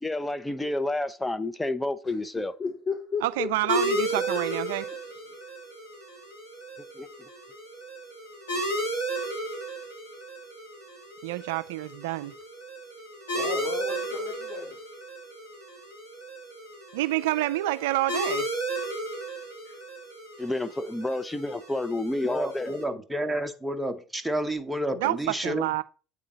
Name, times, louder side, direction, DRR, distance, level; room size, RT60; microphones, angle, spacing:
voice 1, 0.0-2.5 6.9-7.1 20.4-22.8, left 2 dB, 15° left, 0.7 m, -30 dB
voice 2, 2.6-3.5 4.3-4.4 13.3-14.8, left 5 dB, 50° left, 3.5 m, -33 dB
voice 3, 3.2-4.9 11.2-12.3 17.0-18.5 25.0-25.8, right 17 dB, 75° right, 0.3 m, -28 dB
sound 1, 3.7-22.8, right 1 dB, 85° left, 2.1 m, -34 dB
voice 4, 22.2-25.8, right 1 dB, 5° right, 1.0 m, -30 dB
8.6 x 3.8 x 4.0 m
hypercardioid pair, 65°, 0 cm